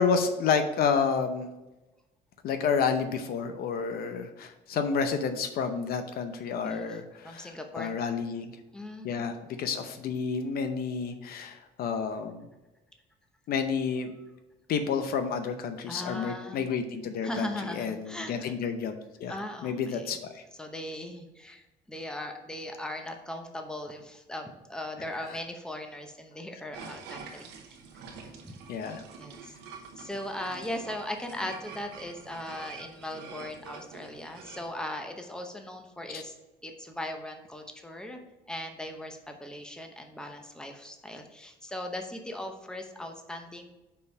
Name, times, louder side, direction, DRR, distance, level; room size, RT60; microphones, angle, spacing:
voice 1, 0.0-1.5 2.4-8.5 9.0-12.4 13.5-14.1 14.7-17.5 17.8-19.3 19.6-20.4 25.3-25.4 28.7-29.0 36.1-36.2, left 6 dB, 65° left, 8 dB, 0.7 m, -30 dB
voice 2, 6.6-7.0 7.2-8.0 8.7-9.1 15.9-16.6 17.2-18.6 19.3-20.2 20.6-27.8 28.1-28.6 29.2-29.5 30.0-36.3 36.6-38.2 38.5-43.7, left 1 dB, 5° left, 4 dB, 0.8 m, -39 dB
sound 1, 26.7-34.7, right 5 dB, 90° right, 1.0 m, -46 dB
5.3 x 4.6 x 5.3 m, 1.0 s
cardioid pair, 110°, 17 cm